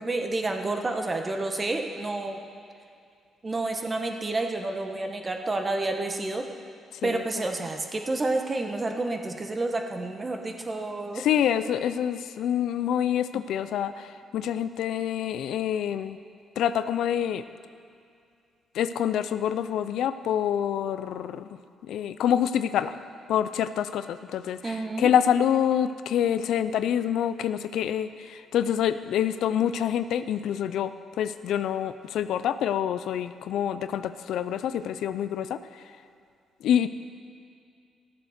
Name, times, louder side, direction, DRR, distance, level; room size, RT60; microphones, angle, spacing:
voice 1, 0.0-2.4 3.4-6.5 7.0-11.3 24.6-25.1, right 2 dB, 25° right, 4 dB, 1.3 m, -29 dB
voice 2, 11.1-16.2 16.6-17.4 18.7-21.5 21.9-23.0 23.3-35.8 36.6-36.9, left 9 dB, 80° left, 12 dB, 0.4 m, -26 dB
14.0 x 7.8 x 6.5 m, 2.4 s
cardioid pair, 90°, 0 cm